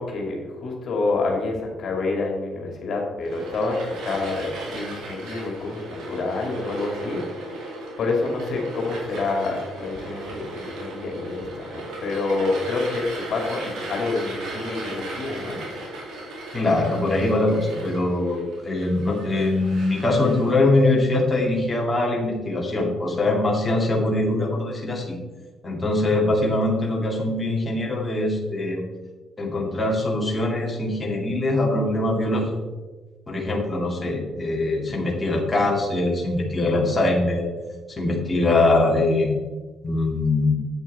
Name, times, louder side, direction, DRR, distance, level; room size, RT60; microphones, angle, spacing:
voice 1, 0.0-7.5 8.0-15.6, left 3 dB, 60° left, 0 dB, 2.2 m, -28 dB
sound 1, 3.2-20.5, right 2 dB, 85° right, 2.8 m, -36 dB
voice 2, 16.5-25.1 25.6-28.8 29.4-32.5 33.3-37.5 37.9-39.4 39.8-40.5, left 2 dB, 20° left, -2 dB, 2.2 m, -22 dB
8.4 x 8.0 x 4.2 m, 1.3 s
cardioid pair, 90°, 0 cm